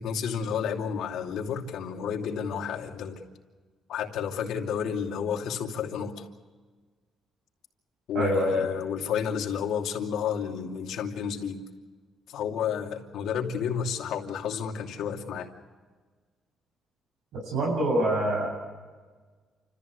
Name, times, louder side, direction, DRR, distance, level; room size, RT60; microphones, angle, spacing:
voice 1, 0.0-3.2 3.9-6.3 8.1-11.6 12.3-15.5, left 7 dB, 80° left, 1 dB, 2.8 m, -31 dB
voice 2, 8.1-8.6 17.4-18.5, right 1 dB, 85° right, -2 dB, 7.9 m, -25 dB
29.5 x 14.5 x 8.1 m, 1.4 s
cardioid pair, 145°, 0 cm